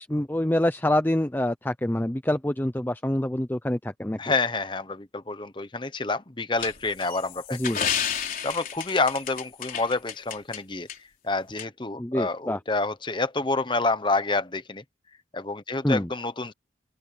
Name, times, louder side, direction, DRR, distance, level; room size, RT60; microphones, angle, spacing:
voice 1, 0.0-4.2 7.5-7.8 12.0-12.6 15.8-16.1, left 1 dB, 10° left, 0.6 m, -26 dB
voice 2, 4.2-10.9 11.2-14.8 15.3-16.5, left 3 dB, 25° left, 1.1 m, -28 dB
sound 1, 6.6-10.6 10.9-11.0 11.6-11.7, left 8 dB, 50° left, 4.8 m, -31 dB
open air
head